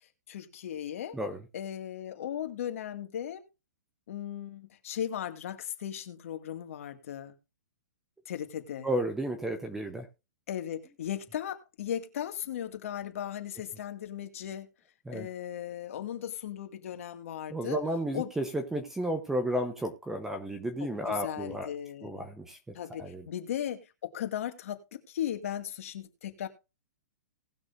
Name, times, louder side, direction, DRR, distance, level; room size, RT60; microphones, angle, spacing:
voice 1, 0.3-1.2 1.5-3.4 4.1-7.3 8.3-8.9 10.5-14.7 15.1-17.8 18.1-18.3 20.8-22.3 22.7-26.5, left 10 dB, 55° left, 2.0 m, -37 dB
voice 2, 8.8-10.0 15.1-15.3 17.5-21.7 22.0-22.6 23.0-23.2, right 1 dB, 5° right, 0.8 m, -32 dB
19.0 x 6.3 x 2.5 m
hypercardioid pair, 170°, 9 cm